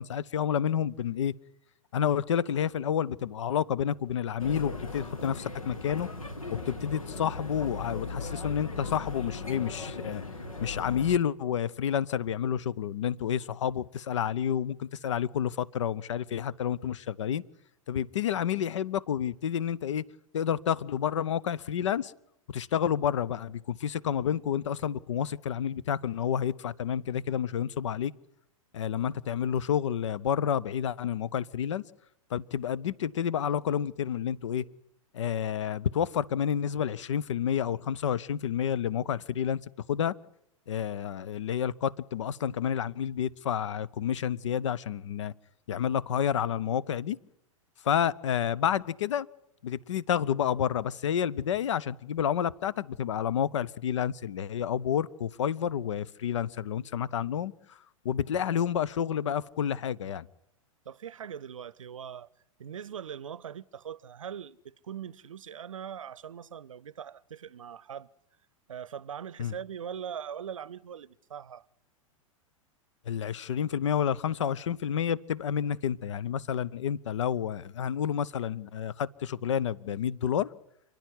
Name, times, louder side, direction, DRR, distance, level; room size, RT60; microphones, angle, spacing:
voice 1, 0.0-1.3 1.9-6.1 6.5-10.2 10.6-17.4 17.9-20.0 20.3-22.1 22.5-28.1 28.7-31.8 32.3-34.7 35.1-39.6 39.9-40.1 40.7-45.3 45.7-47.2 47.8-49.3 49.6-57.8 58.0-60.3 69.4-69.5 73.1-80.5, left 9 dB, 60° left, 0.7 m, -29 dB
sound 1, 4.4-11.2, left 3 dB, 75° left, 2.0 m, -38 dB
voice 2, 60.9-62.3 62.6-68.1 68.7-71.7, right 8 dB, 65° right, 0.7 m, -41 dB
29.0 x 10.5 x 9.7 m
figure-of-eight pair, 100°, 18 cm